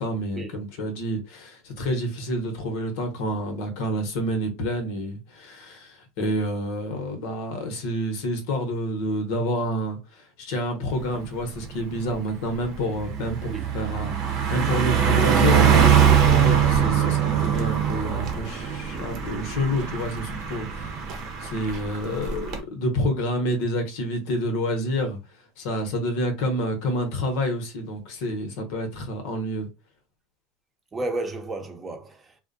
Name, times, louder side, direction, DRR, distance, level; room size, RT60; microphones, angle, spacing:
voice 1, 0.0-25.2 25.6-29.7, equal, 70° left, 0.9 m, -28 dB
Car passing by, 11.0-11.2 11.6-22.6, right 8 dB, 60° right, 0.7 m, -22 dB
voice 2, 30.9-32.4, right 2 dB, 25° right, 0.7 m, -32 dB
2.4 x 2.1 x 2.5 m
supercardioid pair, 100°, 0 cm